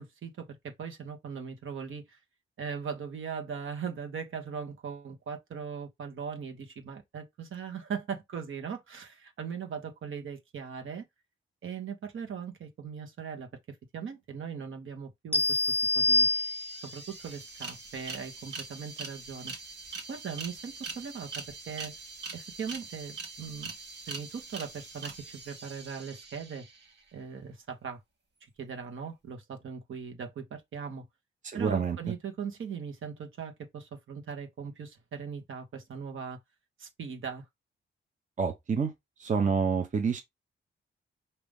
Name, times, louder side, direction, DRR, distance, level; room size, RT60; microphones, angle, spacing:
voice 1, 0.0-2.2 2.6-11.1 11.6-15.6 15.9-16.3 16.8-19.5 20.1-21.9 22.3-23.7 24.1-26.7 27.1-28.0 28.4-31.1 31.5-36.4 36.8-37.5, right 6 dB, 70° right, 1.4 m, -39 dB
sound 1, 15.3-17.1, left 2 dB, 10° left, 0.5 m, -26 dB
sound 2, 15.9-16.0 16.2-27.0, right 4 dB, 55° right, 1.6 m, -43 dB
voice 2, 31.4-32.0 38.4-38.9 39.2-40.2, right 5 dB, 35° right, 0.9 m, -28 dB
5.1 x 2.9 x 3.5 m
wide cardioid pair, 120°, 21 cm